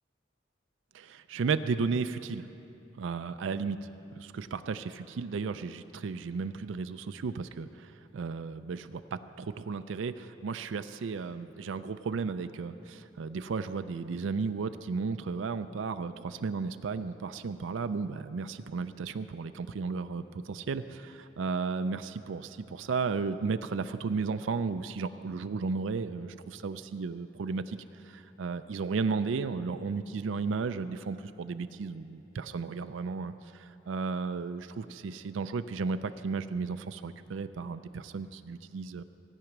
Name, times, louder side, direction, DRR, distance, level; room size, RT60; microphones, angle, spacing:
voice 1, 0.9-2.5 3.0-3.8 4.1-27.8 28.1-39.0, right 4 dB, 80° right, 10 dB, 0.4 m, -34 dB
16.5 x 8.9 x 6.0 m, 2.7 s
head